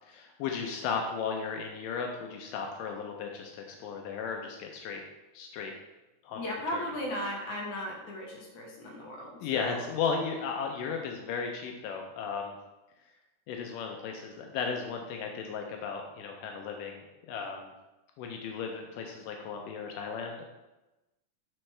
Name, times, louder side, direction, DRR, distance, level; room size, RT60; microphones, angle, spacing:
voice 1, 0.0-5.0 5.3-5.7 6.2-6.4 6.7-6.8 9.4-12.6 13.5-17.0 17.3-17.7 18.2-20.5, left 5 dB, 85° left, 2 dB, 2.3 m, -35 dB
voice 2, 6.4-9.4, left 1 dB, 70° left, -1 dB, 2.4 m, -36 dB
8.9 x 4.4 x 3.2 m, 1.0 s
omnidirectional pair, 3.7 m